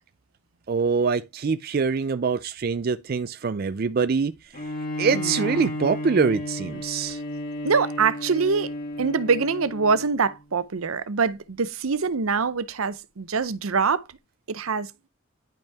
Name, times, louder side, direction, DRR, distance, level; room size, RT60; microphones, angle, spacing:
voice 1, 0.7-4.6 5.0-7.2, right 5 dB, 45° right, 0.4 m, -24 dB
Bowed string instrument, 4.5-10.2, left 1 dB, 40° left, 2.3 m, -33 dB
voice 2, 5.1-5.5 7.6-14.0 14.5-14.9, right 5 dB, 70° right, 0.7 m, -24 dB
10.5 x 5.4 x 3.5 m
head